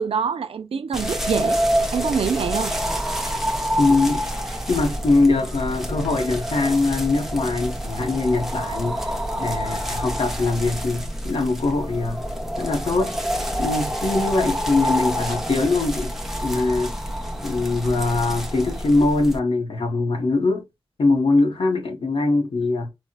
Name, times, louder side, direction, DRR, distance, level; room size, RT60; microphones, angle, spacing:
voice 1, 0.0-1.6 1.9-2.7, right 6 dB, 85° right, 0.4 m, -25 dB
sound 1, 0.9-19.4, equal, 5° right, 0.5 m, -27 dB
voice 2, 3.8-4.3 4.7-9.1 9.4-12.2 12.6-13.1 13.6-16.1 16.4-16.9 17.4-20.7 21.0-22.9, left 3 dB, 75° left, 0.8 m, -22 dB
4.2 x 2.0 x 2.2 m
wide cardioid pair, 105°, 9 cm